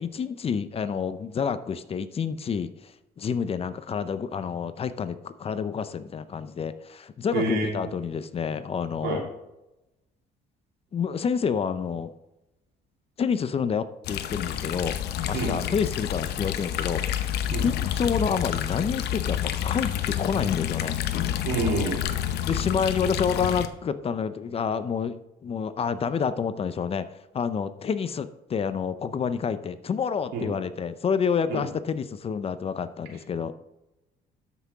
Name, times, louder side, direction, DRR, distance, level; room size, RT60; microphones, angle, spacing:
voice 1, 0.0-9.2 10.9-12.1 13.2-17.3 17.6-21.0 22.5-33.5, left 6 dB, 35° left, 13 dB, 0.6 m, -28 dB
voice 2, 7.3-7.8 9.0-9.2 15.3-15.5 17.5-17.6 21.4-22.0 30.3-30.5 31.5-31.6, right 2 dB, 85° right, -1 dB, 3.3 m, -27 dB
sound 1, 14.0-23.7, left 10 dB, 75° left, 0.8 m, -29 dB
13.0 x 6.1 x 3.6 m, 0.92 s
cardioid pair, 110°, 17 cm